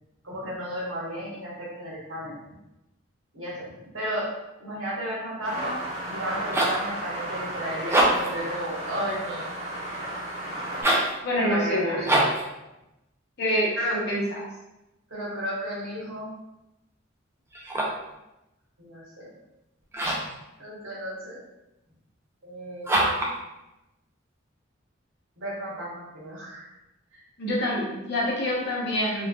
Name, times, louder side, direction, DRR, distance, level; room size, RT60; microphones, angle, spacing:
voice 1, 0.2-2.4 3.3-4.3 4.6-9.5 11.4-12.3 13.8-14.0 15.1-16.3 18.8-19.3 20.6-21.4 22.4-23.4 25.4-26.7 27.1-27.2, equal, 80° right, -6 dB, 1.4 m, -33 dB
sound 1, 5.4-10.8, right 1 dB, 35° right, 1.3 m, -34 dB
sound 2, 6.2-6.9 7.8-8.4 10.7-11.2 12.0-12.5 17.5-18.1 19.9-20.4 22.8-23.4, right 1 dB, 15° right, 0.5 m, -24 dB
voice 2, 11.2-12.0 13.4-14.4 27.4-29.3, equal, 55° left, -4 dB, 0.9 m, -26 dB
3.2 x 3.1 x 2.3 m, 0.94 s
head